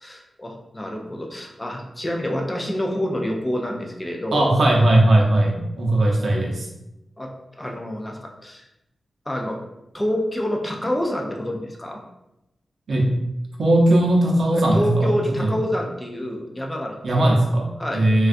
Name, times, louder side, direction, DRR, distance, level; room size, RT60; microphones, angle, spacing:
voice 1, 0.0-4.6 7.2-7.3 7.6-8.7 9.3-9.6 9.9-12.0 14.5-17.0 17.8-18.1, left 1 dB, 15° left, 1 dB, 0.3 m, -27 dB
voice 2, 4.3-6.7 12.9-13.1 13.6-15.6 17.0-17.7 17.9-18.3, right 1 dB, 60° right, -2 dB, 0.6 m, -18 dB
3.5 x 2.3 x 2.4 m, 0.90 s
wide cardioid pair, 165°, 0 cm